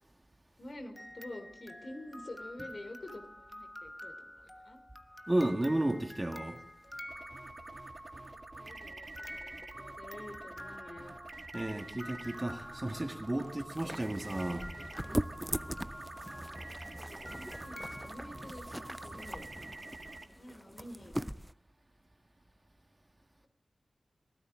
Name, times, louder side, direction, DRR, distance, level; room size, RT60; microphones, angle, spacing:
voice 1, 0.6-4.8 8.1-8.2 8.6-11.1 16.8-19.5 20.4-21.1, left 1 dB, 60° left, 3.1 m, -48 dB
sound 1, 1.0-7.9 8.7-18.1, left 1 dB, 15° left, 1.2 m, -50 dB
voice 2, 5.3-6.6 11.5-14.7, right 1 dB, 25° right, 1.7 m, -33 dB
sound 2, 7.1-20.2, right 2 dB, 45° right, 1.7 m, -47 dB
sound 3, 13.7-21.5, equal, 5° right, 0.5 m, -40 dB
22.5 x 15.5 x 3.8 m
cardioid pair, 45°, 0 cm